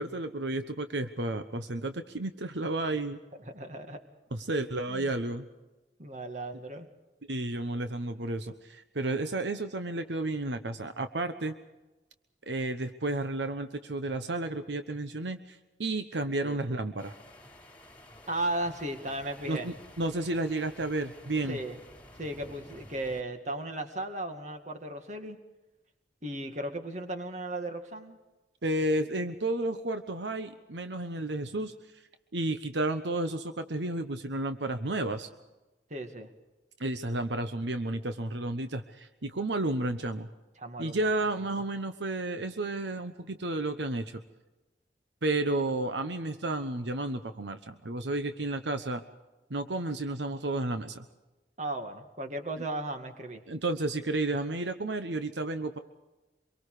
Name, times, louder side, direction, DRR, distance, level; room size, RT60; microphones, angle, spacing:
voice 1, 0.0-3.2 4.3-5.5 7.3-11.5 12.5-17.2 19.5-21.6 28.6-31.7 32.3-35.3 36.8-40.3 40.8-44.2 45.2-49.0 49.5-51.0 53.5-55.8, right 2 dB, 80° right, 8 dB, 1.1 m, -32 dB
voice 2, 3.4-4.0 6.0-6.9 16.4-16.6 18.3-19.7 21.4-21.8 22.2-25.4 26.2-28.2 35.9-36.3 40.6-41.0 51.6-53.4, right 1 dB, 40° right, 6 dB, 2.1 m, -36 dB
sound 1, 17.0-23.2, left 1 dB, 10° left, 4.5 m, -52 dB
25.0 x 23.5 x 5.0 m, 1.1 s
head